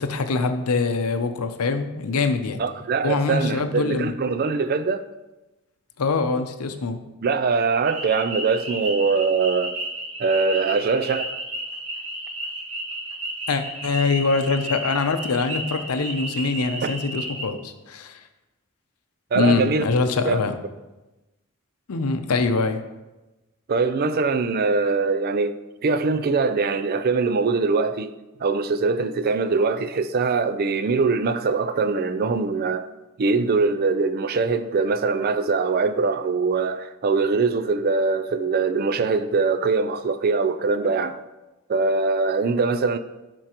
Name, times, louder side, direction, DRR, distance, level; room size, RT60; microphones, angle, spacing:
voice 1, 0.0-2.6 3.0-4.1 6.0-7.0 13.5-18.2 19.3-20.5 21.9-22.8, left 4 dB, 90° left, 0.6 m, -24 dB
voice 2, 2.6-5.1 7.2-9.8 10.2-11.4 16.8-16.9 19.3-19.9 20.3-20.4 23.7-25.5 25.8-28.1 28.4-32.9 33.2-41.2 41.7-43.0, right 4 dB, 45° right, 0.3 m, -22 dB
sound 1, 7.9-17.5, right 1 dB, 70° right, 1.8 m, -33 dB
12.5 x 4.5 x 2.9 m
head